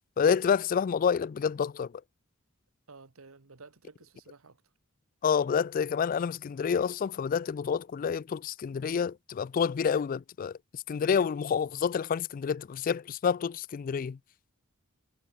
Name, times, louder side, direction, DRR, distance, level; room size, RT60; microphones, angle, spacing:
voice 1, 0.2-1.9 5.2-14.2, left 6 dB, 40° left, 0.3 m, -28 dB
voice 2, 2.9-4.6, right 4 dB, 85° right, 1.3 m, -52 dB
head